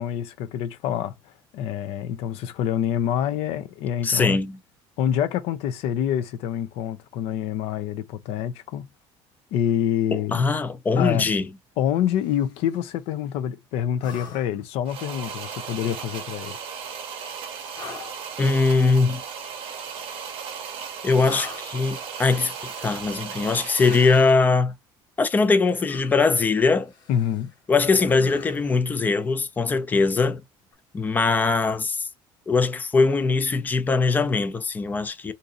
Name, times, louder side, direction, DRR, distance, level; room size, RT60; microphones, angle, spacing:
voice 1, 0.0-4.4 5.0-8.9 9.5-10.4 11.0-11.3 11.8-16.6 27.1-27.5, left 10 dB, 70° left, 0.5 m, -26 dB
voice 2, 4.0-4.6 10.3-11.5 18.4-19.2 21.0-24.7 25.2-26.9 27.7-30.4 30.9-32.1 32.5-35.3, left 4 dB, 15° left, 0.4 m, -21 dB
sound 1, 12.1-12.8 14.0-14.7 15.7-16.4 17.7-18.3 19.8-20.6 21.2-21.8 22.4-23.3 23.9-24.5 25.9-26.4 26.9-27.5 28.0-28.8 30.6-30.7, left 5 dB, 40° left, 1.0 m, -43 dB
sound 2, 14.9-24.4, right 6 dB, 60° right, 0.7 m, -36 dB
2.6 x 2.5 x 4.0 m
cardioid pair, 150°, 10 cm